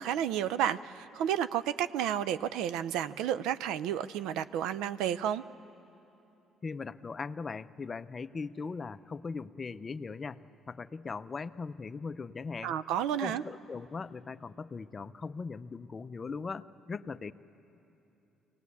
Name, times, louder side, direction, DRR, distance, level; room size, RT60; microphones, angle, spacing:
voice 1, 0.0-5.4 12.6-13.4, right 10 dB, 90° right, 14 dB, 0.4 m, -31 dB
voice 2, 6.6-10.4 10.7-12.8 13.2-17.3, left 4 dB, 30° left, 14 dB, 0.5 m, -39 dB
24.0 x 18.0 x 8.4 m, 2.9 s
cardioid pair, 105°, 0 cm